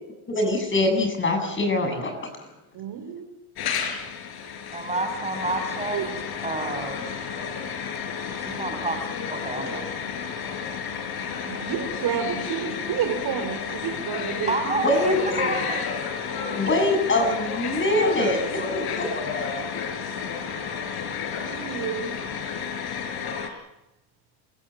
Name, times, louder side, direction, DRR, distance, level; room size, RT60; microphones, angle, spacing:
voice 1, 0.3-2.3 14.8-15.2 16.5-19.7, left 1 dB, 25° left, 5 dB, 7.7 m, -24 dB
voice 2, 2.7-3.3 5.9-6.0 11.3-15.1 21.4-22.1, right 8 dB, 50° right, 6 dB, 4.6 m, -30 dB
sound 1, 3.6-23.5, left 6 dB, 50° left, 4.8 m, -32 dB
voice 3, 4.7-6.1 6.4-7.2 8.4-9.9 14.5-15.9, right 2 dB, 15° right, 5 dB, 6.3 m, -29 dB
27.5 x 16.5 x 9.0 m, 0.94 s
supercardioid pair, 105°, 48 cm